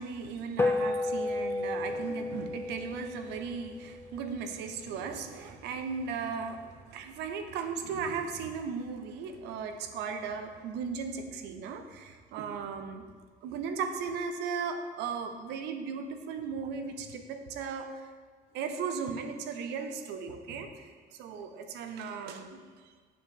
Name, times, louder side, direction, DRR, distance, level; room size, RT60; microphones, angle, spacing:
voice 1, 0.0-13.1 13.4-17.9 18.5-20.7 21.1-22.6, right 5 dB, 85° right, 7 dB, 0.6 m, -36 dB
sound 1, 0.6-5.2, left 2 dB, 15° left, 0.4 m, -33 dB
7.1 x 4.8 x 3.6 m, 1.5 s
cardioid pair, 110°, 17 cm